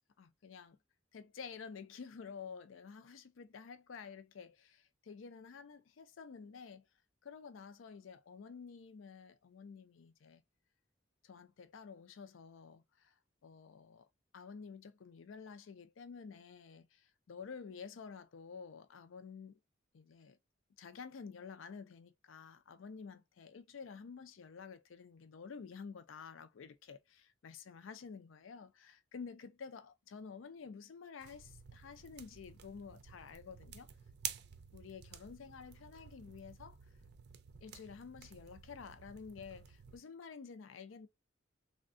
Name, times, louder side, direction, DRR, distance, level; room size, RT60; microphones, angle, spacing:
voice 1, 0.2-0.8 1.1-6.8 7.2-10.4 11.2-13.1 13.4-14.1 14.3-19.6 19.9-20.4 20.8-33.9 34.7-36.8 37.6-41.1, left 5 dB, 80° left, 0.4 m, -51 dB
sound 1, 31.2-40.0, right 9 dB, 60° right, 0.4 m, -51 dB
3.4 x 2.2 x 2.5 m
head